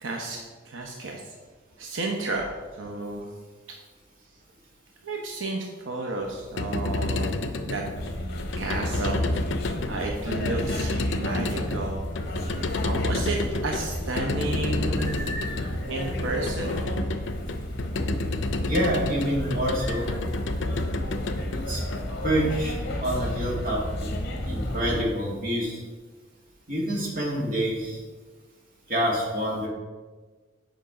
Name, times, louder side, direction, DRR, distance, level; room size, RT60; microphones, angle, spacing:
voice 1, 0.0-0.4 0.6-1.4 1.8-3.3 5.0-7.8 8.6-9.2 9.9-12.0 12.8-15.5 15.9-16.8, right 2 dB, 85° right, 0 dB, 0.9 m, -32 dB
sound 1, 6.3-22.5, left 2 dB, 70° left, 0.6 m, -30 dB
sound 2, 8.0-25.0, left 1 dB, 55° left, 1.2 m, -33 dB
voice 2, 15.0-15.7 18.6-20.2 21.5-21.8 22.2-22.7 23.0-23.8 24.4-25.8 26.7-28.0 28.9-29.7, equal, 50° right, -4 dB, 2.3 m, -27 dB
8.2 x 5.3 x 5.0 m, 1.4 s
head